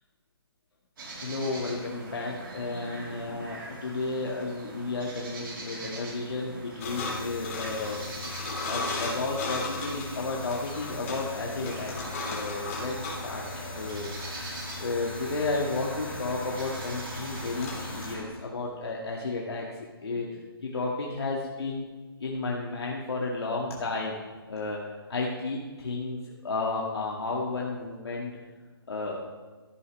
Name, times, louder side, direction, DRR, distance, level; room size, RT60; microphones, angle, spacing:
sound 1, 1.0-18.2, right 2 dB, 60° right, 3.6 m, -42 dB
voice 1, 1.2-8.4 8.6-12.0 12.2-13.4 13.7-21.8 22.2-24.2 24.5-24.8 25.1-28.3 28.9-29.3, left 3 dB, 85° left, -3 dB, 2.1 m, -33 dB
sound 2, 6.8-18.1, left 3 dB, 35° left, 3.2 m, -37 dB
14.0 x 11.5 x 3.4 m, 1.3 s
hypercardioid pair, 165°, 13 cm